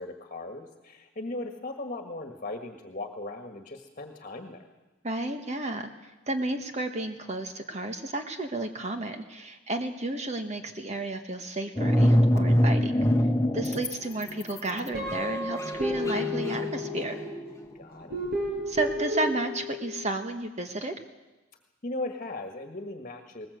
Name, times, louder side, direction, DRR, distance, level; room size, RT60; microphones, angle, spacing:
voice 1, 0.0-4.7 17.7-18.2 21.8-23.5, left 2 dB, 45° left, 5 dB, 1.6 m, -38 dB
voice 2, 5.0-5.9 6.3-12.9 13.5-17.2 18.7-20.9, right 2 dB, 35° right, 6 dB, 1.4 m, -32 dB
sound 1, 11.8-13.9 14.2-17.6, equal, 15° left, 1.2 m, -24 dB
Guitar, 14.9-17.4 18.1-20.0, left 1 dB, 55° right, 6.1 m, -32 dB
20.0 x 20.0 x 8.0 m, 1.1 s
head